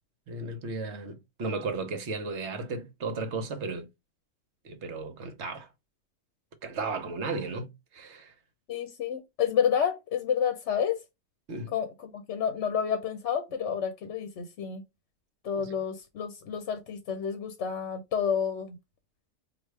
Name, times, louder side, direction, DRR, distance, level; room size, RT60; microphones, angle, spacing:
voice 1, 0.3-3.9 4.6-5.7 6.6-7.7 7.9-8.3 11.5-11.7 15.5-15.7, right 3 dB, 60° right, 1.0 m, -34 dB
voice 2, 8.7-11.0 11.7-14.8 15.4-18.8, left 7 dB, 65° left, 0.9 m, -29 dB
4.3 x 2.4 x 3.2 m
omnidirectional pair, 1.4 m